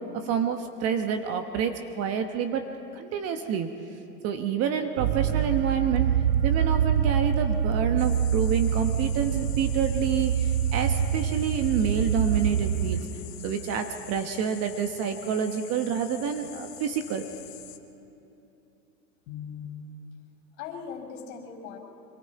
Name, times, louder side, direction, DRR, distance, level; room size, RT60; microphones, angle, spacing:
voice 1, 0.1-2.6 3.0-3.7 4.2-6.1 6.4-13.1 13.4-17.2, right 7 dB, 30° right, 6 dB, 1.2 m, -28 dB
sound 1, 5.0-13.0, right 8 dB, 80° right, 1.0 m, -25 dB
sound 2, 8.0-17.8, left 11 dB, 70° left, 2.0 m, -46 dB
voice 2, 19.3-19.7 20.6-21.8, left 7 dB, 50° left, 3 dB, 5.4 m, -39 dB
25.5 x 24.0 x 4.8 m, 2.9 s
hypercardioid pair, 130°, 50 cm